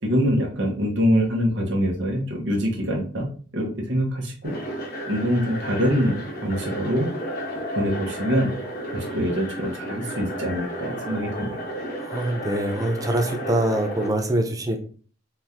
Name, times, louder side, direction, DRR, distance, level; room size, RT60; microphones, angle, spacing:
voice 1, 0.0-3.3 3.5-4.5 5.1-7.1 7.7-8.5 8.9-11.6, equal, 60° right, -1 dB, 1.3 m, -24 dB
sound 1, 4.4-14.1, equal, 45° left, 1.3 m, -33 dB
voice 2, 12.0-14.8, right 1 dB, 15° right, 4 dB, 0.6 m, -24 dB
4.4 x 3.6 x 2.8 m, 0.42 s
head